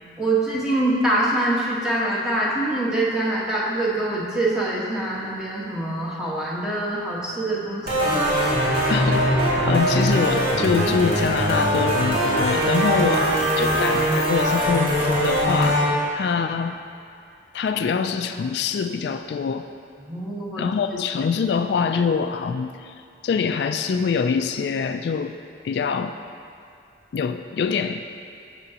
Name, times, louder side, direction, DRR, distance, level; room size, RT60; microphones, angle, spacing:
voice 1, 0.2-8.3 20.1-20.7, right 1 dB, 5° right, -7 dB, 1.4 m, -24 dB
sound 1, 7.9-15.9, equal, 50° right, 2.4 m, -21 dB
voice 2, 8.9-15.8 16.1-16.8 17.5-19.7 20.6-22.9 23.2-25.4 25.6-26.2 27.1-28.0, left 5 dB, 65° left, 8 dB, 0.3 m, -24 dB
14.5 x 6.8 x 2.9 m, 2.4 s
head